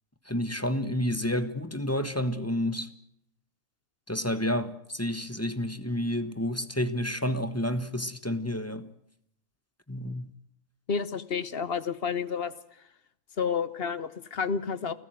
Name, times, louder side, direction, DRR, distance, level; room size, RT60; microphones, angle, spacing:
voice 1, 0.3-2.9 4.1-8.9 9.9-10.3, left 1 dB, 10° left, 1.0 m, -30 dB
voice 2, 10.9-12.5 13.4-14.9, left 6 dB, 45° left, 1.1 m, -30 dB
29.5 x 14.5 x 7.8 m
omnidirectional pair, 1.4 m